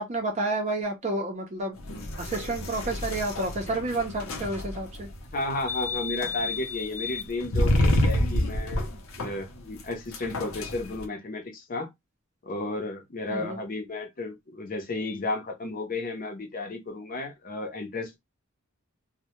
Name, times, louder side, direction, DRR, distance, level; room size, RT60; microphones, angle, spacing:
voice 1, 0.0-1.8 2.2-5.1 13.3-13.6, right 2 dB, 35° right, 0.5 m, -30 dB
sound 1, 1.8-11.0, left 1 dB, 80° left, 0.6 m, -29 dB
voice 2, 5.3-11.9 12.4-18.2, left 2 dB, 45° left, 0.6 m, -33 dB
2.1 x 2.1 x 2.9 m
head